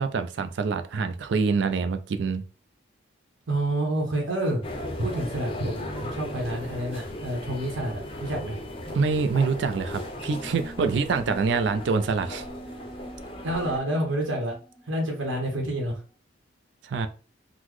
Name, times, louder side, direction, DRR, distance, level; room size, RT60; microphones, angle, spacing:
voice 1, 0.0-2.4 8.9-12.4 16.8-17.1, right 4 dB, 65° right, 0.3 m, -25 dB
voice 2, 3.5-4.6 5.0-8.5 10.8-11.0 13.4-14.5 14.9-16.0, right 1 dB, 90° right, 0.8 m, -28 dB
sound 1, 4.6-13.8, left 1 dB, 25° left, 0.5 m, -37 dB
sound 2, 10.3-15.5, equal, 35° right, 1.7 m, -44 dB
3.8 x 2.0 x 3.0 m
head